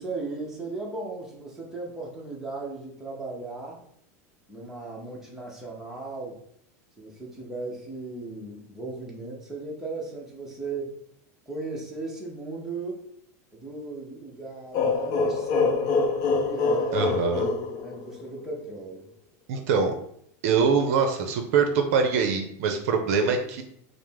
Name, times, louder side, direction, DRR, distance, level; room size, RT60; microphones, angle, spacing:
voice 1, 0.0-3.8 4.5-6.4 7.0-11.0 11.5-13.1 13.5-15.9 16.4-17.4 17.8-19.1, right 3 dB, 5° right, -4 dB, 0.8 m, -36 dB
sound 1, 14.7-18.4, left 4 dB, 40° left, 0.6 m, -25 dB
voice 2, 16.9-17.4 19.5-19.9 20.4-23.6, right 5 dB, 65° right, 5 dB, 0.6 m, -23 dB
4.8 x 2.0 x 3.5 m, 0.69 s
supercardioid pair, 140°, 9 cm